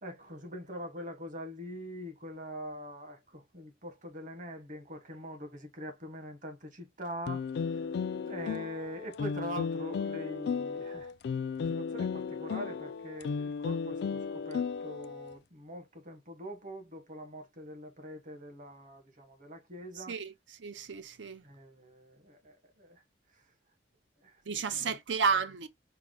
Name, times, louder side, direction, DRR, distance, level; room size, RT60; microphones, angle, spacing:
voice 1, 0.0-7.9 8.3-11.1 11.6-20.1 21.4-23.0 23.3-23.4 24.2-24.9, equal, 45° right, 1.1 m, -43 dB
sound 1, 7.3-15.4, left 6 dB, 65° left, 0.3 m, -35 dB
voice 2, 20.0-21.4 24.5-25.7, right 5 dB, 90° right, 0.6 m, -32 dB
4.6 x 2.1 x 3.7 m
head